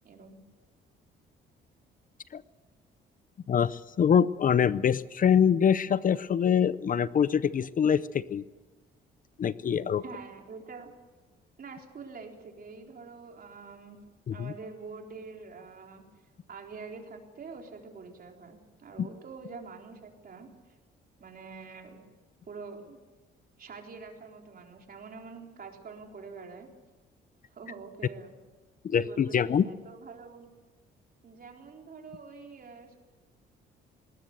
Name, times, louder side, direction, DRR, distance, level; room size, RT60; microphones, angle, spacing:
voice 1, 3.5-8.4 9.4-10.0 14.3-14.5 19.0-19.1 28.8-29.6, left 8 dB, 45° left, 17 dB, 0.6 m, -24 dB
voice 2, 10.0-10.9 11.6-14.0 14.3-16.1 16.5-20.8 21.2-22.0 22.5-23.0 23.6-26.7 27.5-28.3 29.0-30.5 31.2-33.0, right 4 dB, 50° right, 2 dB, 4.0 m, -45 dB
20.0 x 19.0 x 8.0 m, 1.3 s
cardioid pair, 90°, 20 cm